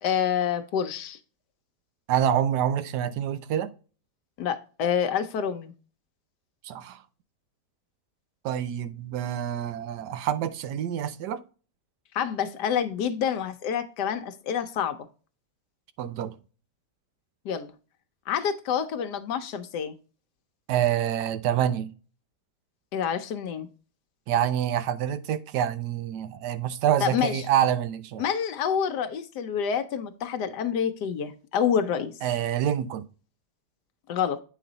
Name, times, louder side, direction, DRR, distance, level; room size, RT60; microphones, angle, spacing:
voice 1, 0.0-1.2 4.4-5.7 12.1-15.0 17.4-17.7 18.3-19.9 22.9-23.7 27.0-27.5 28.2-32.1 34.1-34.4, left 8 dB, 80° left, 1.3 m, -27 dB
voice 2, 2.1-3.7 6.6-7.0 8.4-11.4 16.0-16.3 20.7-21.9 24.3-28.2 32.2-33.1, right 10 dB, 90° right, 1.2 m, -26 dB
8.6 x 4.1 x 3.9 m
omnidirectional pair, 1.8 m